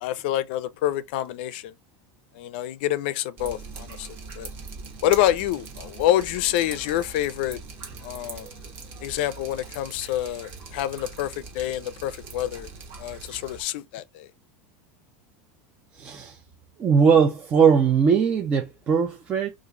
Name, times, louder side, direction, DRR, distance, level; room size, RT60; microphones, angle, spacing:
voice 1, 0.0-1.7 2.3-4.1 4.4-4.5 5.0-7.6 8.0-8.5 9.0-12.7 13.0-14.3, left 13 dB, 55° left, 0.4 m, -27 dB
Drip, 3.4-13.6, right 4 dB, 35° right, 1.0 m, -41 dB
voice 2, 15.9-16.4 16.8-19.5, right 6 dB, 20° right, 0.4 m, -20 dB
2.9 x 2.4 x 3.7 m
supercardioid pair, 170°, 7 cm